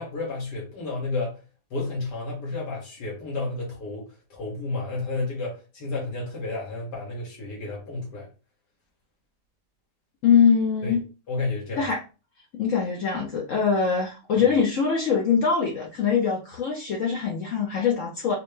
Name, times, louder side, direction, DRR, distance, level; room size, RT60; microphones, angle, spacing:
voice 1, 0.0-1.4 1.7-8.3 10.8-11.0 11.3-11.9 14.4-14.5, left 3 dB, 80° left, -3 dB, 1.8 m, -31 dB
voice 2, 10.2-11.0 11.8-12.0 12.5-18.3, left 6 dB, 60° left, 0 dB, 0.9 m, -23 dB
4.1 x 2.1 x 3.1 m, 0.32 s
omnidirectional pair, 1.8 m